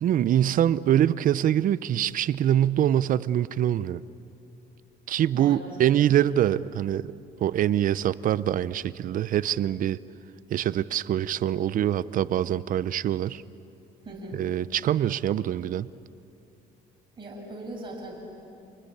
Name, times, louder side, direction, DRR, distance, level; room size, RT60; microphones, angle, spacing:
voice 1, 0.0-4.0 5.1-7.1 7.4-10.0 10.5-13.4 14.4-15.9, right 11 dB, 55° right, 17 dB, 0.7 m, -24 dB
voice 2, 5.3-5.7 14.0-14.4 17.2-18.1, right 1 dB, 30° right, -3 dB, 6.4 m, -39 dB
28.5 x 20.5 x 8.6 m, 2.9 s
cardioid pair, 110°, 17 cm